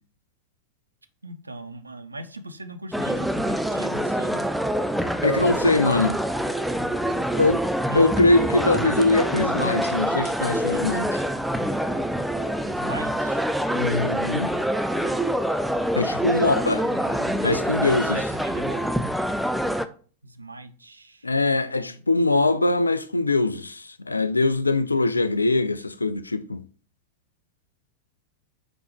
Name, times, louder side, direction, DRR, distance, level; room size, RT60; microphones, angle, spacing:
voice 1, 1.2-4.5 7.9-8.2 12.7-13.5 16.3-17.4 17.9-18.9 20.2-22.0, right 1 dB, 80° right, 0.4 m, -40 dB
sound 1, 2.9-19.9, equal, ahead, 0.3 m, -25 dB
voice 2, 5.2-6.2 7.4-7.6 7.9-11.2 13.7-14.5 16.0-16.8 17.4-18.2 21.2-26.6, left 2 dB, 80° left, 0.3 m, -22 dB
5.1 x 3.0 x 3.3 m
figure-of-eight pair, 90°, 0 cm